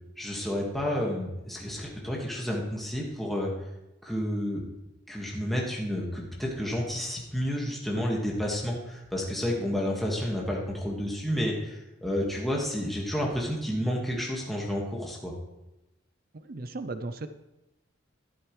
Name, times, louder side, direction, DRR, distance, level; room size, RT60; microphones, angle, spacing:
voice 1, 0.2-3.5 4.0-4.6 5.1-15.3, equal, ahead, -3 dB, 1.7 m, -30 dB
voice 2, 16.3-17.3, right 2 dB, 45° right, 11 dB, 0.5 m, -36 dB
12.5 x 11.5 x 3.2 m, 0.93 s
head